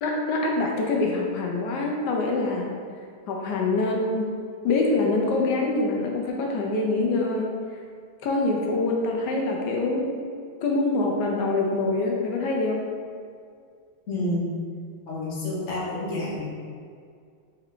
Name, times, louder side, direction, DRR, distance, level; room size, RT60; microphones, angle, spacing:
voice 1, 0.0-2.7 3.3-4.3 4.6-7.8 8.2-10.1 10.6-12.8, left 2 dB, 70° left, 0 dB, 1.0 m, -25 dB
voice 2, 14.1-14.4 15.1-16.5, left 1 dB, 45° left, -7 dB, 1.1 m, -29 dB
3.4 x 3.3 x 3.7 m, 2.2 s
omnidirectional pair, 2.2 m